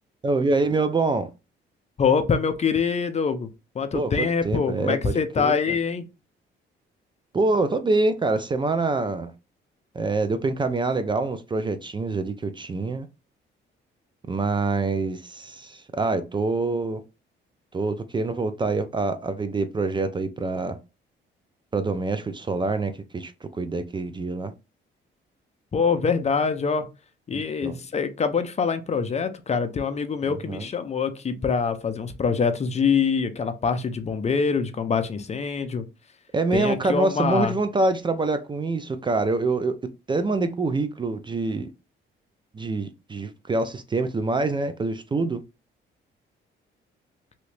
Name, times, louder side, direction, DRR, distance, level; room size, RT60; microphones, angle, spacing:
voice 1, 0.2-1.3 3.9-5.8 7.3-9.3 9.9-13.1 14.3-17.0 17.7-20.8 21.7-24.5 27.3-27.8 30.2-30.7 36.3-39.7 40.1-41.7 42.5-45.4, right 3 dB, 25° right, 0.4 m, -25 dB
voice 2, 2.0-3.5 3.7-6.1 25.7-26.9 27.3-35.8 36.5-37.5, left 5 dB, 35° left, 0.5 m, -24 dB
2.9 x 2.7 x 3.2 m
cardioid pair, 90°, 20 cm